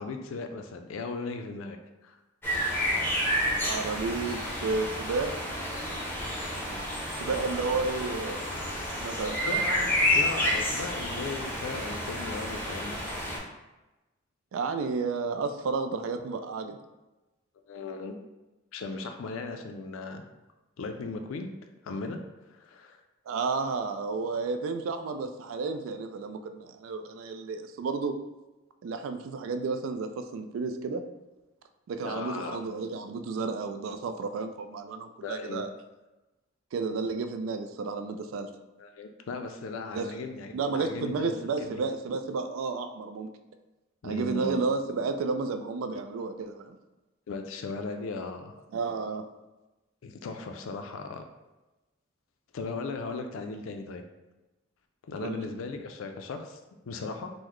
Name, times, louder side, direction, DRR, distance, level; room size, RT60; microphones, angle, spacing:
voice 1, 0.0-1.8 2.0-2.2 9.4-13.0 17.6-18.2 18.7-20.2 20.8-21.5 21.8-22.2 22.5-23.0 32.0-32.7 35.2-35.7 38.8-41.8 44.0-44.6 47.3-48.5 50.0-51.2 52.5-54.0 55.1-56.6 56.8-57.3, left 3 dB, 90° left, 6 dB, 0.4 m, -37 dB
sound 1, 2.4-13.4, equal, 10° left, 0.6 m, -30 dB
voice 2, 3.6-5.3 7.2-8.4 9.0-9.4 14.5-16.8 23.3-28.1 28.8-31.0 31.9-35.7 36.7-38.5 39.9-40.1 40.5-43.3 44.0-46.8 48.7-49.3 55.2-55.4, right 4 dB, 85° right, 7 dB, 0.3 m, -32 dB
3.8 x 2.0 x 3.0 m, 1.1 s
head